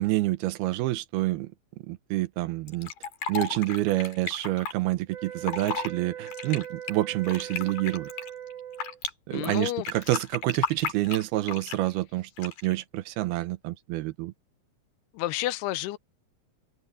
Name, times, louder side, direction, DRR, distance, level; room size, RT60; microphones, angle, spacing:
voice 1, 0.0-1.5 1.9-2.9 3.3-8.1 9.3-14.3, right 17 dB, 80° right, 2.7 m, -28 dB
Fill (with liquid), 2.7-4.7 5.3-5.9 6.3-9.1 9.4-11.9 12.4-12.8, left 6 dB, 60° left, 4.6 m, -34 dB
sound 1, 5.1-9.0, right 9 dB, 50° right, 7.8 m, -40 dB
voice 2, 9.3-9.9 15.1-16.0, left 16 dB, 85° left, 2.8 m, -30 dB
open air
omnidirectional pair, 4.6 m